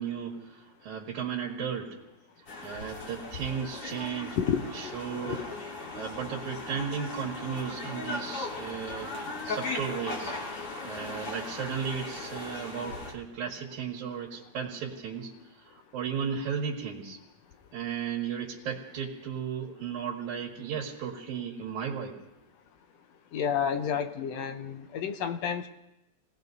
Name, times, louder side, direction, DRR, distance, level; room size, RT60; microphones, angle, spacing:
voice 1, 0.0-2.0 2.6-4.4 4.7-5.4 6.0-10.3 10.8-15.3 15.9-17.2 17.7-22.2, right 7 dB, 85° right, -1 dB, 3.0 m, -35 dB
sound 1, 2.5-13.1, left 3 dB, 50° left, 3.1 m, -38 dB
voice 2, 4.4-5.0 5.2-5.4 23.3-25.7, left 7 dB, 75° left, 8 dB, 1.8 m, -30 dB
28.5 x 18.5 x 2.7 m, 0.95 s
omnidirectional pair, 3.3 m